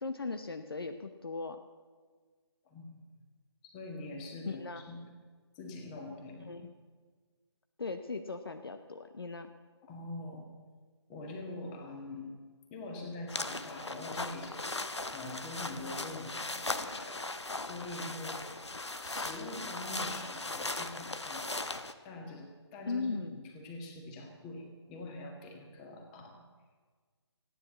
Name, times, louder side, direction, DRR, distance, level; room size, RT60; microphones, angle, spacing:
voice 1, 0.0-1.6 4.4-4.8 6.5-6.7 7.8-9.5 22.9-23.4, left 4 dB, 55° left, 8 dB, 0.9 m, -38 dB
voice 2, 2.6-3.0 3.6-5.0 5.5-6.6 9.8-10.5 11.1-12.3 12.7-14.9 15.1-18.5 19.0-21.7 22.0-26.4, left 2 dB, 15° left, 2 dB, 1.8 m, -44 dB
sound 1, 13.3-21.9, left 2 dB, 75° left, 1.0 m, -38 dB
15.0 x 9.8 x 8.2 m, 1.5 s
figure-of-eight pair, 150°, 15 cm